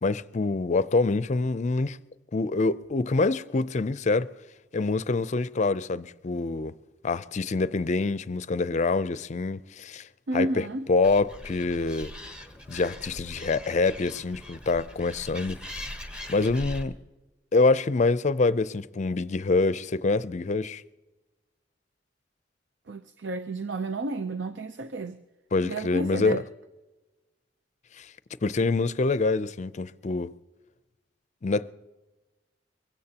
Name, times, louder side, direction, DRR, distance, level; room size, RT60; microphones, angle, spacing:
voice 1, 0.0-2.0 2.3-4.3 4.7-6.7 7.0-10.1 10.3-12.1 12.7-15.6 16.3-17.0 17.5-20.8 25.5-26.4 28.0-28.1 28.4-30.3 31.4-31.7, left 3 dB, 40° left, 0.5 m, -25 dB
voice 2, 10.3-10.9 22.9-25.2 25.6-26.4, right 2 dB, 85° right, 0.6 m, -31 dB
Animal, 11.0-16.8, left 1 dB, 5° right, 1.1 m, -41 dB
23.5 x 16.5 x 2.9 m
head